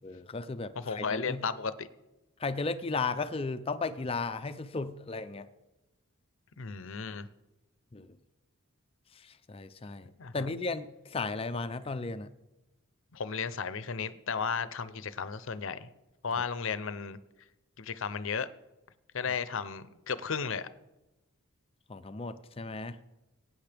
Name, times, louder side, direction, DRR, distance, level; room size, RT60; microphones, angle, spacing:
voice 1, 0.0-1.4 2.4-5.5 7.9-8.1 9.1-12.3 21.9-23.0, left 3 dB, 25° left, 11 dB, 0.5 m, -35 dB
voice 2, 0.8-1.9 6.6-7.3 10.2-10.5 13.1-15.9 16.2-17.2 17.8-18.5 19.1-20.7, left 5 dB, 65° left, 14 dB, 0.6 m, -34 dB
22.0 x 9.3 x 3.4 m, 1.0 s
head